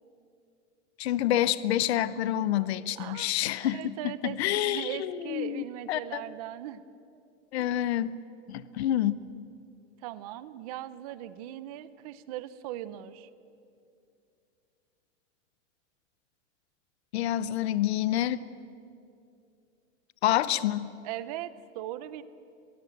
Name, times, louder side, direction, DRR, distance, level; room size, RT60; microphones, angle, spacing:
voice 1, 1.0-6.2 7.5-8.2 8.5-9.2 17.1-18.5 20.2-20.9, left 12 dB, 60° left, 16 dB, 0.9 m, -28 dB
voice 2, 3.0-3.3 3.6-6.8 7.6-7.8 10.0-13.3 21.0-22.2, right 13 dB, 30° right, 15 dB, 0.7 m, -39 dB
22.5 x 22.0 x 8.0 m, 2.5 s
supercardioid pair, 180°, 37 cm